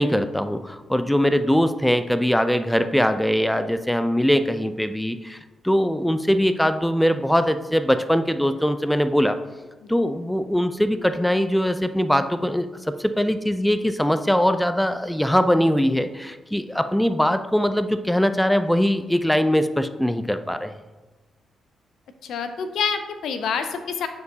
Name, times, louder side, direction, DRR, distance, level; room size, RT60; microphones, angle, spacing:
voice 1, 0.0-5.4 5.6-9.4 9.9-20.7, equal, 5° left, 10 dB, 0.5 m, -21 dB
voice 2, 22.2-24.1, left 6 dB, 70° left, 8 dB, 0.5 m, -27 dB
9.1 x 4.5 x 2.8 m, 1.2 s
hypercardioid pair, 40°, 0 cm